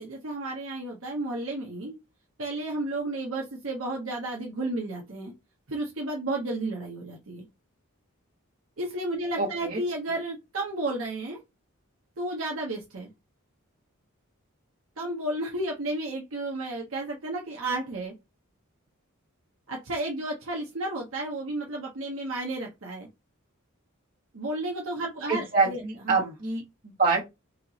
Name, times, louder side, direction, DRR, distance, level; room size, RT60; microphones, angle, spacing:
voice 1, 0.0-2.0 2.4-5.3 5.7-7.4 8.8-11.4 12.2-13.1 15.0-18.1 19.7-23.1 24.3-26.3, right 2 dB, 70° right, 1.0 m, -32 dB
voice 2, 9.4-9.8 25.3-27.3, right 4 dB, 40° right, 1.9 m, -26 dB
4.2 x 2.9 x 2.8 m
head